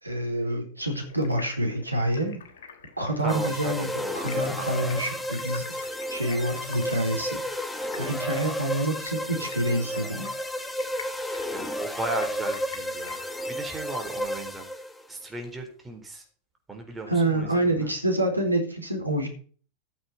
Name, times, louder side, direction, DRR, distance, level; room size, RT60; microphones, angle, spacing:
voice 1, 0.0-2.4 3.0-3.9 4.2-7.4 8.0-10.3 17.1-19.3, right 1 dB, 85° right, 3 dB, 3.7 m, -27 dB
Stream, 0.8-14.2, left 6 dB, 60° left, 2.9 m, -47 dB
voice 2, 3.2-5.2 11.5-13.2 13.5-14.7 15.1-16.2 16.7-17.9, right 2 dB, 10° right, 2 dB, 4.0 m, -37 dB
sound 1, 3.3-15.0, equal, 5° left, 1.6 m, -32 dB
14.5 x 8.0 x 4.2 m, 0.42 s
figure-of-eight pair, 90°, 0 cm